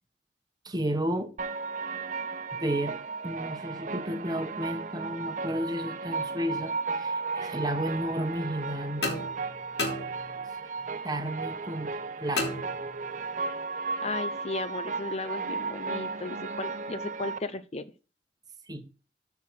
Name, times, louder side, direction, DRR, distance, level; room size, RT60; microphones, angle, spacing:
voice 1, 0.6-1.3 2.5-3.0 3.2-9.3 10.8-12.7 18.7-18.9, right 1 dB, 20° right, 1.2 m, -32 dB
sound 1, 1.4-17.4, right 4 dB, 45° right, 0.7 m, -35 dB
sound 2, 9.0-10.7 12.4-13.3, left 2 dB, 75° left, 3.1 m, -34 dB
voice 2, 14.0-17.9, left 3 dB, 35° left, 0.7 m, -35 dB
13.0 x 4.7 x 6.1 m
head